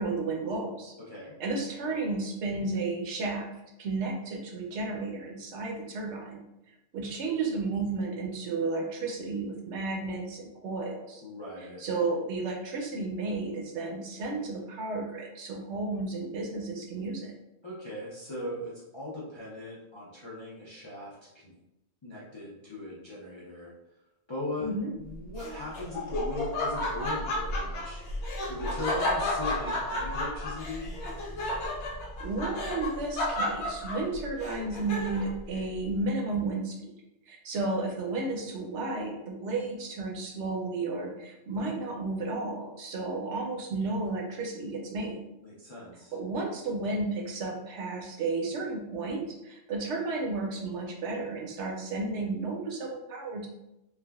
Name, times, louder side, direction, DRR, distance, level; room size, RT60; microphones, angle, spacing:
voice 1, 0.0-0.9 1.4-3.5 3.8-6.4 6.9-11.2 11.8-17.3 24.6-24.9 32.2-36.9 37.3-45.2 46.1-53.5, right 3 dB, 75° right, 0 dB, 0.9 m, -33 dB
voice 2, 11.2-11.8 17.6-21.1 21.4-21.5 22.0-23.7 24.3-30.9 45.4-46.1, left 1 dB, 40° left, -8 dB, 0.4 m, -39 dB
Laughter, 25.3-35.4, left 1 dB, 75° left, 0.8 m, -32 dB
3.3 x 2.1 x 2.2 m, 0.90 s
omnidirectional pair, 1.2 m